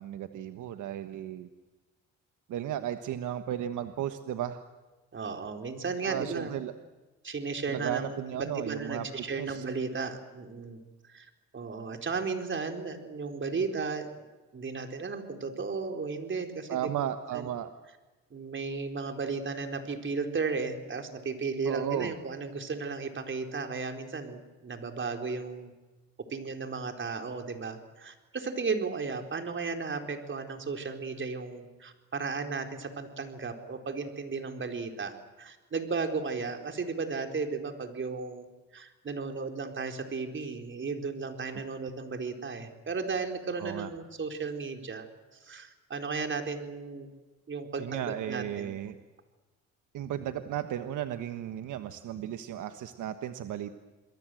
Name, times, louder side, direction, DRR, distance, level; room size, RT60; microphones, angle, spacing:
voice 1, 0.0-1.5 2.5-4.6 6.0-6.7 7.7-9.6 16.7-17.7 21.6-22.1 43.6-43.9 47.8-48.9 49.9-53.8, right 11 dB, 80° right, 8 dB, 1.4 m, -35 dB
voice 2, 5.1-6.5 7.2-10.8 11.1-14.1 14.5-16.9 17.3-17.5 18.3-25.7 26.3-38.5 38.7-45.0 45.4-47.1 47.5-48.7, right 4 dB, 40° right, 5 dB, 4.3 m, -35 dB
28.5 x 22.0 x 7.9 m, 1.2 s
cardioid pair, 90°, 30 cm